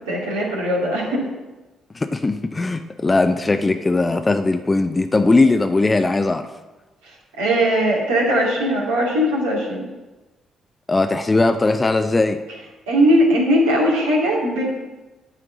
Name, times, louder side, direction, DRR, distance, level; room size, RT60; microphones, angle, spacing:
voice 1, 0.1-1.2 7.4-9.9 12.9-14.8, equal, 75° right, -4 dB, 2.2 m, -19 dB
voice 2, 1.9-6.5 10.9-12.4, left 3 dB, 25° left, 8 dB, 0.5 m, -19 dB
9.6 x 4.5 x 7.2 m, 1.1 s
figure-of-eight pair, 40°, 0 cm